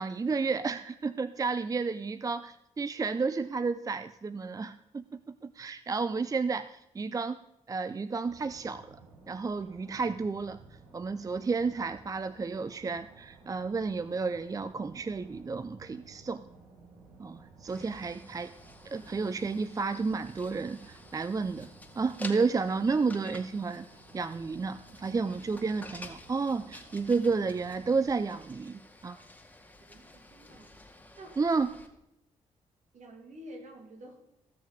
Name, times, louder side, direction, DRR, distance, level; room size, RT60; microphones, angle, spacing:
voice 1, 0.0-7.4 7.7-9.0 9.3-10.6 10.9-16.5 17.2-18.5 18.9-21.7 22.0-23.9 24.1-29.2 31.4-31.7, right 4 dB, 25° right, 13 dB, 0.4 m, -31 dB
sound 1, 8.2-28.0, right 3 dB, 80° right, 3.0 m, -55 dB
sound 2, 17.7-31.9, left 2 dB, 10° left, 2.0 m, -50 dB
voice 2, 29.9-30.7 31.2-31.4 32.9-34.3, right 1 dB, 60° right, 3 dB, 2.5 m, -49 dB
15.5 x 6.4 x 5.1 m, 0.84 s
supercardioid pair, 55°, 14 cm